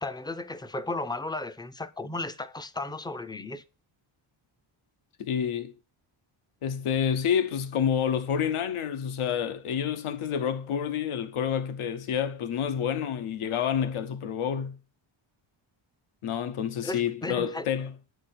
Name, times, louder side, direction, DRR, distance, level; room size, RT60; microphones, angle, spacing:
voice 1, 0.0-3.6 16.8-17.7, left 2 dB, 10° left, 0.4 m, -35 dB
voice 2, 5.2-5.7 6.6-14.8 16.2-17.9, left 8 dB, 90° left, 1.1 m, -28 dB
9.2 x 4.9 x 5.9 m
wide cardioid pair, 160°, 49 cm